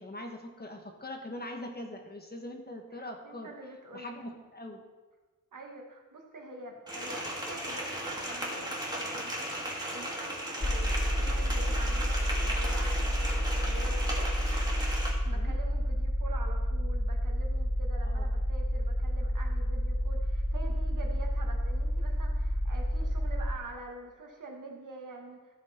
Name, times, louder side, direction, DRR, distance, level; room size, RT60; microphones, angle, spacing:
voice 1, 0.0-3.5 3.9-4.8 15.3-15.6 18.0-18.2, left 1 dB, 30° left, 3 dB, 1.3 m, -42 dB
voice 2, 3.2-4.2 5.5-9.3 9.9-14.3 15.2-25.6, right 2 dB, 70° right, 1 dB, 1.8 m, -46 dB
sound 1, 6.9-15.1, right 1 dB, 15° right, 2.1 m, -36 dB
sound 2, 10.6-23.6, equal, 15° left, 0.5 m, -30 dB
14.0 x 6.3 x 4.4 m, 1.3 s
wide cardioid pair, 120°, 32 cm